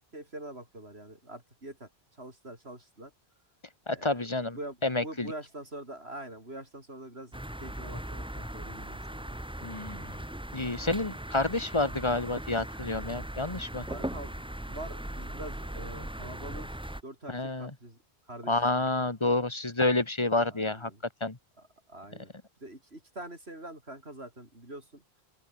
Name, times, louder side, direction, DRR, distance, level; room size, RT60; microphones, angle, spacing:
voice 1, 0.1-3.1 3.9-4.2 4.5-9.4 13.9-16.7 17.0-18.0 18.3-19.1 20.4-21.0 21.6-22.3 22.6-25.0, right 1 dB, 90° right, 7.3 m, -45 dB
voice 2, 3.9-4.6 4.8-5.3 9.6-10.2 10.5-13.9 17.3-17.7 18.5-20.9 21.2-21.4, left 2 dB, 30° left, 1.7 m, -29 dB
sound 1, 7.3-17.0, right 1 dB, 5° right, 0.8 m, -39 dB
open air
omnidirectional pair, 1.0 m